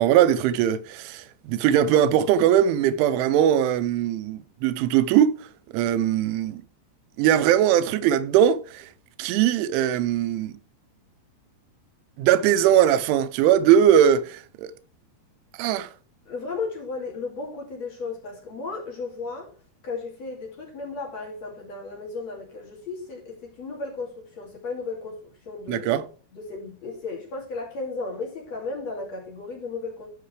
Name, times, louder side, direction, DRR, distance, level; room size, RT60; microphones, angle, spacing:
voice 1, 0.0-5.4 5.7-6.6 7.2-8.9 9.2-10.5 12.2-14.7 15.6-15.9 25.7-26.1, right 10 dB, 90° right, 3.2 m, -20 dB
voice 2, 16.3-19.5 19.8-25.2 25.5-25.9 26.3-30.1, left 4 dB, 40° left, 3.2 m, -34 dB
14.5 x 5.8 x 3.3 m
omnidirectional pair, 5.3 m